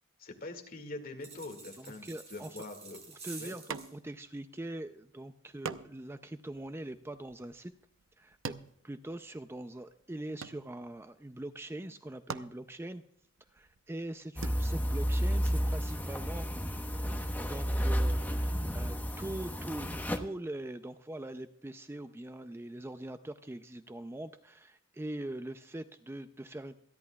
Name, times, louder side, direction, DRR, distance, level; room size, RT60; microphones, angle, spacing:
voice 1, 0.2-3.0 3.4-3.6, left 2 dB, 50° left, 4 dB, 2.1 m, -44 dB
sound 1, 1.2-3.9, right 4 dB, 35° right, 4.7 m, -49 dB
voice 2, 1.8-2.5 3.2-7.7 8.2-8.6 8.8-13.0 13.5-16.5 17.4-19.9 20.2-26.7, right 1 dB, 10° right, 9 dB, 0.4 m, -42 dB
sound 2, 3.7-4.3 4.6-4.7 5.6-9.6 9.9-11.1 11.8-11.9 12.2-14.5, right 5 dB, 90° right, 0.7 m, -44 dB
sound 3, 14.4-20.2, equal, 10° left, 1.0 m, -31 dB
27.5 x 11.0 x 2.3 m, 0.68 s
head